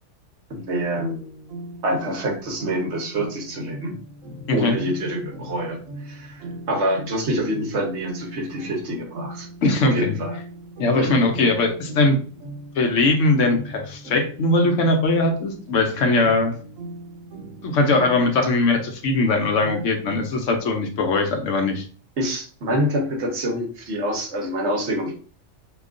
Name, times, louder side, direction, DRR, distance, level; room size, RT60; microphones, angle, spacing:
voice 1, 0.5-1.2 1.8-4.0 4.5-9.5 9.8-10.4 11.0-11.2 19.6-19.8 22.2-25.1, right 1 dB, 60° right, 1 dB, 1.1 m, -26 dB
sound 1, 0.9-18.4, right 1 dB, 80° right, 1.3 m, -39 dB
voice 2, 9.6-10.2 10.8-12.2 12.8-16.5 17.6-21.8, left 2 dB, 70° left, 4 dB, 1.0 m, -20 dB
2.9 x 2.3 x 3.6 m, 0.41 s
omnidirectional pair, 1.3 m